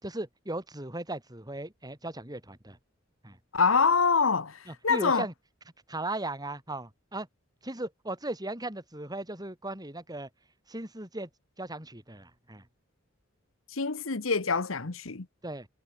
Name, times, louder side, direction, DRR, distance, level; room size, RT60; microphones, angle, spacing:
voice 1, 0.0-2.8 3.2-3.4 4.7-5.3 5.9-7.3 7.6-10.3 10.7-11.3 11.6-12.6 15.4-15.7, right 2 dB, 20° right, 4.9 m, -37 dB
voice 2, 3.5-5.2 13.7-15.3, left 5 dB, 75° left, 1.2 m, -25 dB
head